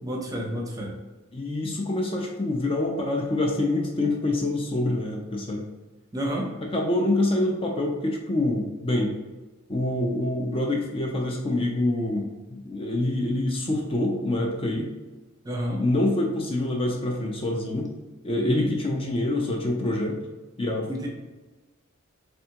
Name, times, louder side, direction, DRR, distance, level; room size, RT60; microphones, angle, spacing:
voice 1, 0.0-0.9 6.1-6.5 15.4-15.8 18.3-18.7 20.9-21.1, equal, 20° right, -1 dB, 0.7 m, -30 dB
voice 2, 1.3-5.7 6.7-9.2 9.7-14.9 15.8-17.9 18.2-20.2 20.6-21.1, left 1 dB, 25° left, 0 dB, 0.5 m, -26 dB
3.4 x 3.4 x 2.9 m, 1.2 s
head